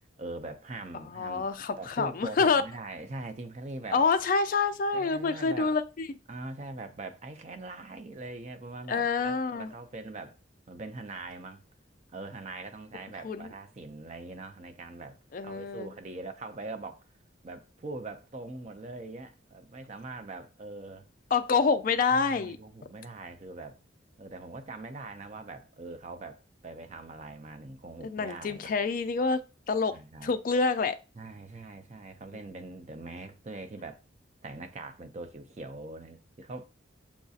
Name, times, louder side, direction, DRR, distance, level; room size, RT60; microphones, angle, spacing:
voice 1, 0.2-1.5 1.8-4.0 4.9-5.8 6.3-10.4 10.7-11.6 12.1-17.1 17.4-21.1 22.1-23.8 24.2-28.7 29.9-30.3 31.2-34.0 34.4-36.6, right 2 dB, 35° right, 0.4 m, -42 dB
voice 2, 1.1-2.6 3.9-6.1 8.9-9.7 13.2-13.5 15.3-15.9 21.3-22.6 28.0-31.0, left 4 dB, 45° left, 0.3 m, -27 dB
7.0 x 2.7 x 2.4 m
head